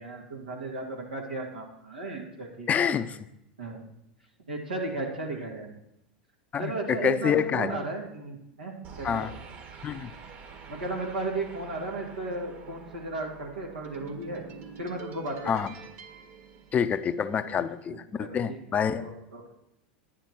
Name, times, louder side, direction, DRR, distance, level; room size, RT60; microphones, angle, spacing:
voice 1, 0.0-3.0 3.6-3.8 4.5-5.7 6.6-9.3 10.7-14.4 14.8-15.5 17.9-18.6 19.0-19.5, right 2 dB, 90° right, -2 dB, 2.3 m, -35 dB
voice 2, 2.7-3.2 6.5-7.8 9.0-9.3 9.8-10.1 15.5-15.7 16.7-19.0, left 7 dB, 30° left, 11 dB, 0.7 m, -27 dB
sound 1, 8.8-17.4, right 6 dB, 45° right, 1.7 m, -46 dB
10.5 x 10.0 x 4.6 m, 0.81 s
hypercardioid pair, 90°, 5 cm